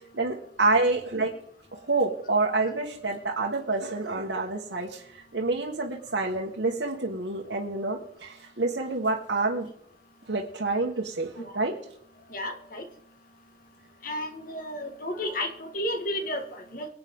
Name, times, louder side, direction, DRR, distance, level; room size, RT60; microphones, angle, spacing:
voice 1, 0.1-1.3 1.7-9.7 10.3-11.7, right 3 dB, 75° right, -2 dB, 1.7 m, -28 dB
voice 2, 12.3-12.8 14.0-16.9, left 1 dB, 45° left, 5 dB, 1.8 m, -32 dB
24.0 x 8.8 x 3.8 m, 0.68 s
head